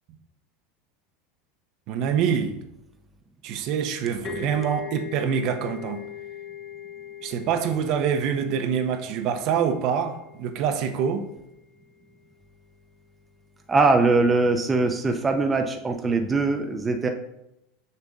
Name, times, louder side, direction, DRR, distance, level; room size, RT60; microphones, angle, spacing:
voice 1, 1.9-2.6 3.4-6.0 7.2-11.3, right 7 dB, 55° right, 0.8 m, -25 dB
sound 1, 4.2-11.8, left 10 dB, 45° left, 1.1 m, -41 dB
voice 2, 13.7-17.1, right 3 dB, 20° right, 0.6 m, -21 dB
6.8 x 5.5 x 3.6 m
supercardioid pair, 125°, 0 cm